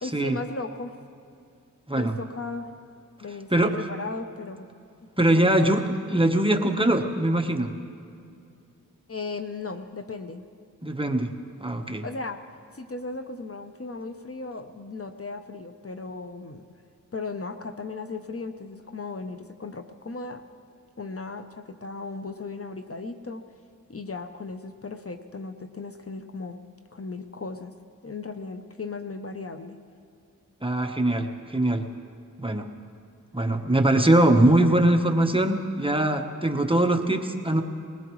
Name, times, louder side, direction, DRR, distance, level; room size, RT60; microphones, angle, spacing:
voice 1, 0.0-1.0 2.0-2.7 3.2-4.7 5.4-5.8 9.1-10.4 12.0-12.4 12.7-16.7 17.1-20.4 21.0-23.4 23.9-26.6 26.9-27.7 28.0-29.8, left 3 dB, 45° left, 7 dB, 0.7 m, -36 dB
voice 2, 5.2-7.7 10.8-11.3 11.6-12.0 30.6-31.9 32.4-32.7 33.3-37.6, right 1 dB, 15° right, 4 dB, 1.1 m, -22 dB
20.0 x 20.0 x 3.1 m, 2.5 s
wide cardioid pair, 60°, 32 cm